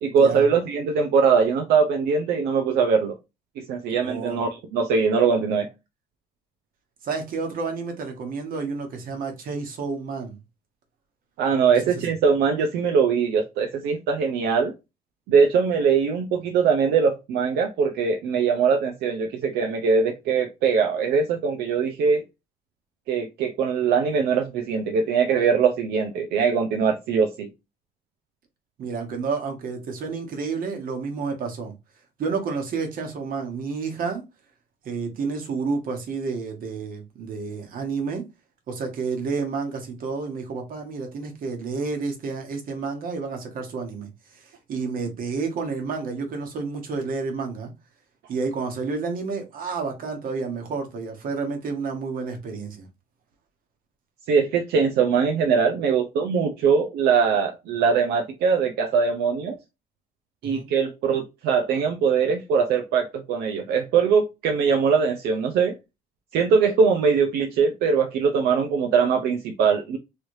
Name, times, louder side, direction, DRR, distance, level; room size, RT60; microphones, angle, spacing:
voice 1, 0.0-3.2 3.6-5.7 11.4-14.7 15.3-22.2 23.1-27.5 54.3-59.6 60.4-65.7 66.3-70.0, right 6 dB, 75° right, 0.6 m, -21 dB
voice 2, 4.0-4.4 7.0-10.4 28.8-31.7 32.2-34.2 34.8-38.2 38.7-47.7 48.3-52.9 60.4-60.7, right 4 dB, 55° right, 1.2 m, -30 dB
3.2 x 3.2 x 2.6 m
cardioid pair, 110°, 17 cm